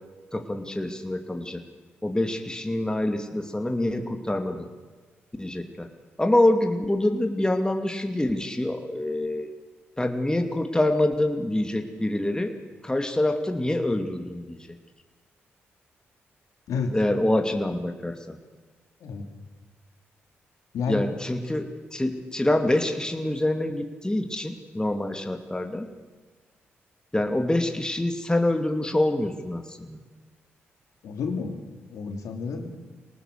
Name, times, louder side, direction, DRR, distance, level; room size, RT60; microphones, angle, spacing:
voice 1, 0.3-1.6 2.0-4.7 5.4-5.9 6.2-9.5 10.0-12.6 12.8-14.7 16.9-18.4 20.9-25.9 27.1-30.0, left 1 dB, 15° left, 5 dB, 2.5 m, -26 dB
voice 2, 31.0-31.6 31.9-32.7, left 5 dB, 70° left, 5 dB, 2.9 m, -30 dB
23.5 x 18.5 x 6.8 m, 1.4 s
hypercardioid pair, 40°, 6 cm